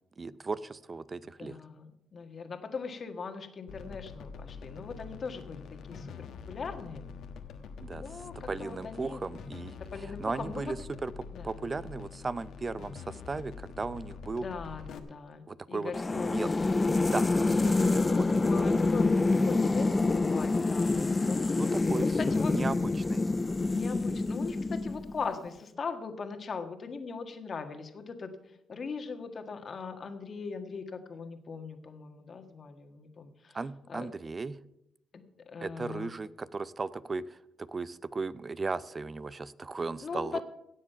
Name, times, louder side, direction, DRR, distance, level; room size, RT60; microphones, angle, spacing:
voice 1, 0.2-1.6 7.8-8.0 8.5-11.1 11.4-14.5 15.5-16.5 17.1-18.9 21.5-23.2 33.5-34.6 35.6-40.4, right 4 dB, 30° right, 17 dB, 0.5 m, -36 dB
voice 2, 1.4-7.0 7.9-9.2 9.9-10.7 11.3-11.5 14.4-17.2 18.4-21.4 22.2-22.5 23.7-28.3 28.7-33.6 33.9-34.1 35.1-36.1 40.0-40.4, left 5 dB, 45° left, 6 dB, 1.6 m, -40 dB
sound 1, 3.7-15.0, left 5 dB, 75° left, 1.2 m, -45 dB
sound 2, 15.9-25.3, left 3 dB, 25° left, 0.4 m, -27 dB
17.0 x 7.5 x 5.7 m, 0.84 s
cardioid pair, 90°, 0 cm